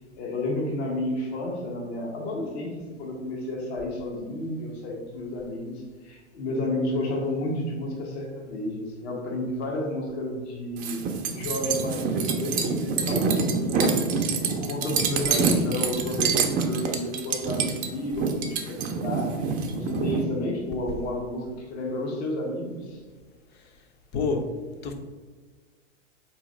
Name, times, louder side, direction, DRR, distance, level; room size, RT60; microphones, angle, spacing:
voice 1, 0.2-14.0 14.5-19.5 19.7-23.0, left 1 dB, 60° left, -1 dB, 1.2 m, -31 dB
sound 1, 10.8-20.2, right 5 dB, 25° right, 0.4 m, -26 dB
voice 2, 24.1-24.5 24.8-24.9, left 4 dB, 30° left, 5 dB, 0.6 m, -27 dB
4.1 x 3.1 x 3.7 m, 1.4 s
hypercardioid pair, 115°, 36 cm